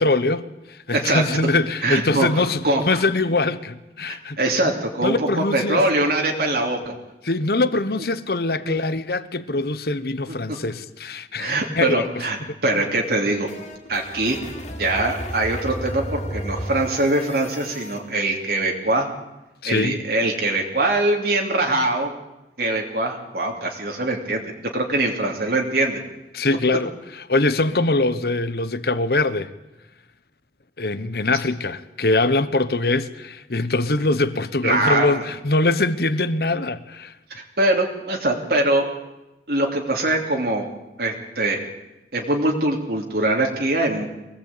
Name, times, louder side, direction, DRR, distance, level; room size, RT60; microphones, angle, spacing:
voice 1, 0.0-4.4 4.6-4.7 5.0-5.8 7.2-12.2 19.6-20.0 26.3-26.9 27.2-29.5 30.8-37.1, left 2 dB, 60° left, 1.1 m, -23 dB
voice 2, 0.9-1.2 1.8-2.3 2.6-3.0 4.1-6.9 8.6-8.8 11.4-13.5 13.9-14.4 14.8-19.1 19.6-22.1 22.6-26.0 34.6-35.2 37.3-38.9 39.5-40.7 41.0-41.6 42.1-44.1, right 2 dB, 60° right, 3.0 m, -22 dB
sound 1, 13.0-18.0, equal, 40° left, 2.8 m, -33 dB
23.5 x 18.0 x 8.7 m
head